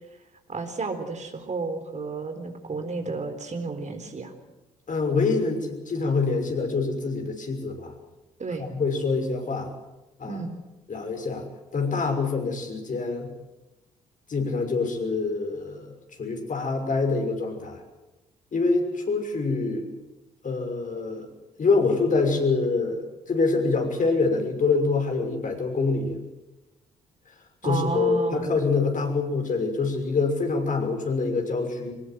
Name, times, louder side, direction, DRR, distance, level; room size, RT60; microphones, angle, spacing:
voice 1, 0.5-4.3 8.4-8.7 10.2-10.6 27.6-28.5, right 3 dB, 40° right, 6 dB, 4.0 m, -32 dB
voice 2, 4.9-7.9 8.6-9.7 10.2-10.4 10.9-11.5 11.7-13.3 14.3-15.9 16.2-17.8 18.5-19.9 20.4-21.3 21.6-26.2 27.6-31.9, left 4 dB, 45° left, 4 dB, 6.2 m, -25 dB
23.5 x 20.5 x 7.7 m, 1.0 s
hypercardioid pair, 45°, 19 cm